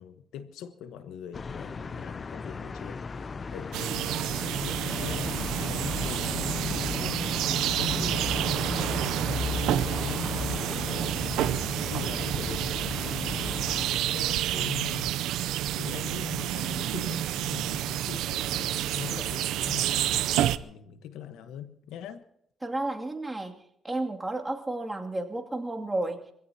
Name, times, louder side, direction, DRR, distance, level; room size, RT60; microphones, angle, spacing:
voice 1, 0.0-15.3 15.8-22.2, left 9 dB, 90° left, 1.2 m, -42 dB
sound 1, 1.3-13.9, left 4 dB, 35° left, 0.5 m, -35 dB
sound 2, 3.7-20.6, right 13 dB, 90° right, 0.6 m, -29 dB
sound 3, 7.7-19.5, left 3 dB, 60° left, 2.9 m, -50 dB
voice 2, 22.6-26.2, right 2 dB, 15° right, 2.6 m, -32 dB
25.0 x 16.5 x 2.9 m
cardioid pair, 90°, 0 cm